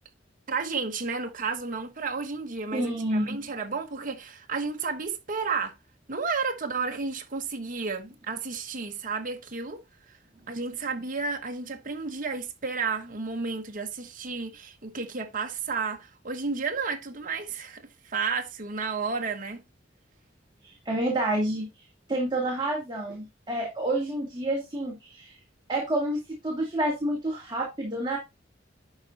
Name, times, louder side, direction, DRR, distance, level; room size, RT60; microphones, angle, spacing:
voice 1, 0.5-5.7 6.1-9.8 10.1-10.2 10.5-19.6, right 4 dB, 45° right, 1.1 m, -32 dB
voice 2, 2.7-3.4 20.6-21.7 22.1-25.3 25.7-28.2, right 1 dB, 25° right, 2.2 m, -29 dB
11.0 x 4.3 x 4.0 m
head